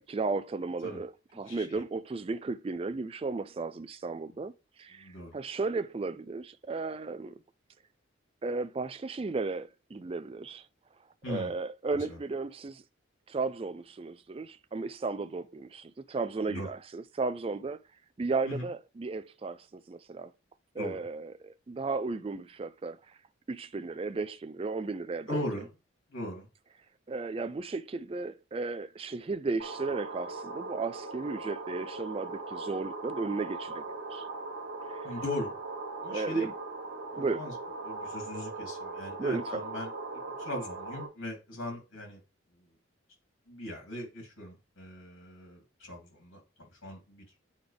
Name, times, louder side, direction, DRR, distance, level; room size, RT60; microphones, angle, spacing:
voice 1, 0.0-4.5 4.8-7.3 8.4-10.7 11.3-12.8 13.3-17.8 18.2-20.3 20.8-23.2 23.5-25.4 27.1-33.8 34.1-34.3 34.9-35.1 36.1-36.5 37.2-37.5 39.2-39.6, right 3 dB, 30° right, 0.3 m, -34 dB
voice 2, 1.5-1.8 4.9-5.3 11.2-11.5 12.1-12.2 16.5-16.7 18.4-18.7 20.8-21.0 25.3-25.7 26.1-26.5 35.0-35.5 36.0-36.5 37.1-37.5 37.8-42.2 43.5-46.4 46.8-47.2, left 1 dB, 80° left, 2.9 m, -39 dB
sound 1, 29.6-41.1, right 3 dB, 70° right, 1.7 m, -40 dB
8.4 x 4.0 x 3.4 m
head